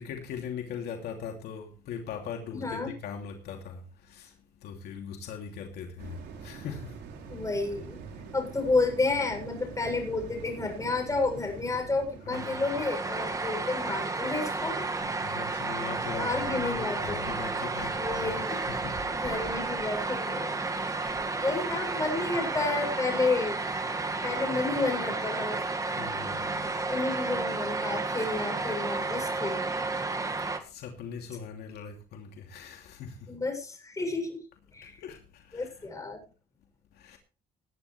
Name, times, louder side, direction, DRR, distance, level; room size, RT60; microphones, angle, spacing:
voice 1, 0.0-7.0 12.3-12.6 15.0-19.1 20.7-21.6 24.0-24.1 26.0-26.6 30.6-33.3 34.8-35.8 36.9-37.2, left 6 dB, 75° left, 2.9 m, -41 dB
voice 2, 2.5-2.9 7.3-8.0 8.3-14.9 16.2-17.3 18.0-18.6 19.1-20.5 21.4-23.5 24.2-25.6 26.9-29.8 33.3-34.4 34.7-35.0 35.5-36.2, left 3 dB, 20° left, 7.5 m, -31 dB
sound 1, 6.0-16.7 17.1-17.2, right 5 dB, 80° right, 4.8 m, -46 dB
sound 2, 12.3-30.6, right 3 dB, 20° right, 1.9 m, -32 dB
20.0 x 11.0 x 3.3 m
cardioid pair, 110°, 17 cm